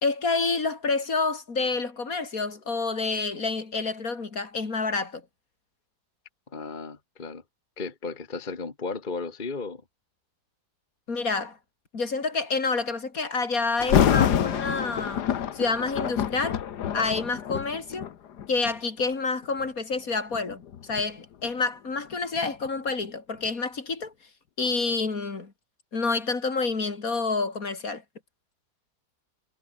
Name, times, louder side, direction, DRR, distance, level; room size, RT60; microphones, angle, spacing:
voice 1, 0.0-5.2 11.1-11.6 11.9-15.2 15.5-16.6 16.9-18.1 18.5-24.1 24.6-25.5 25.9-28.0, left 4 dB, 60° left, 3.2 m, -28 dB
voice 2, 6.5-7.4 7.8-9.8, left 4 dB, 30° left, 1.7 m, -34 dB
Thunder, 13.8-18.8 19.4-19.7 20.3-23.1 23.5-23.6, left 9 dB, 80° left, 1.8 m, -27 dB
omnidirectional pair, 1.7 m